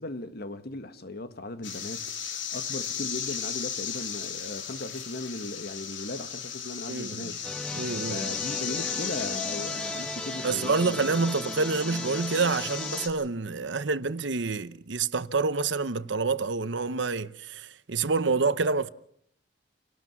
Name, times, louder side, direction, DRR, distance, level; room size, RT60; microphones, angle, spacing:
voice 1, 0.0-7.4 8.1-11.2, left 2 dB, 55° left, 1.6 m, -38 dB
sound 1, 1.6-13.1, left 8 dB, 85° left, 3.3 m, -35 dB
voice 2, 6.9-7.4 7.7-8.3 10.4-18.9, right 4 dB, 70° right, 0.9 m, -27 dB
sound 2, 7.4-13.1, equal, 5° left, 1.2 m, -37 dB
28.0 x 18.5 x 6.0 m
head